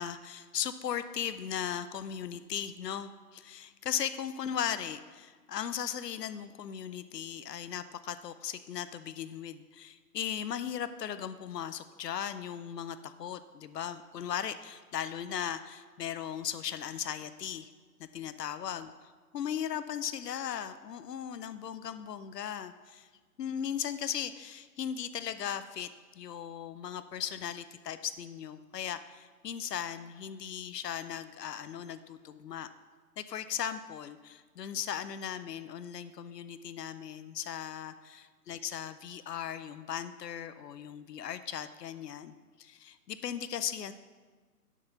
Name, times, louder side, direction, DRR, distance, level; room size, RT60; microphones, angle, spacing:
voice 1, 0.0-17.7 18.0-23.1 23.4-25.9 26.2-32.7 33.2-43.9, left 9 dB, 90° left, 12 dB, 0.6 m, -37 dB
7.1 x 4.7 x 6.7 m, 1.4 s
hypercardioid pair, 160°, 47 cm